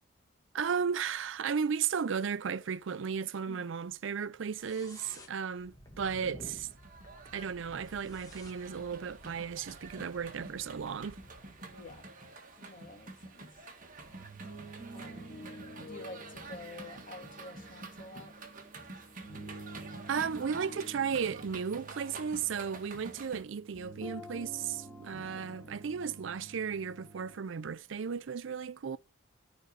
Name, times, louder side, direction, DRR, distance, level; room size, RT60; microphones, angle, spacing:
voice 1, 0.5-6.7 7.3-11.2 20.1-29.0, right 6 dB, 65° right, 0.5 m, -35 dB
sound 1, 4.5-12.1, equal, 15° left, 1.6 m, -53 dB
sound 2, 6.7-23.4, right 3 dB, 40° right, 1.6 m, -48 dB
voice 2, 10.4-10.7 11.7-12.0 12.6-13.5 14.9-15.5 15.8-18.3 22.5-22.7 25.1-25.6, left 2 dB, 40° left, 1.8 m, -50 dB
sound 3, 14.1-27.3, right 1 dB, ahead, 3.0 m, -49 dB
12.5 x 5.3 x 5.1 m
head